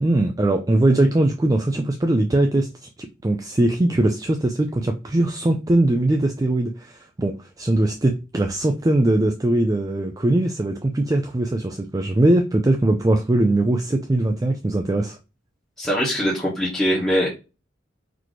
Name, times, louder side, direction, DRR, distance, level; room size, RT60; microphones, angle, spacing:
voice 1, 0.0-15.2, right 1 dB, 20° right, 0.4 m, -21 dB
voice 2, 15.8-17.3, equal, 5° left, 1.3 m, -22 dB
4.1 x 2.9 x 3.1 m
head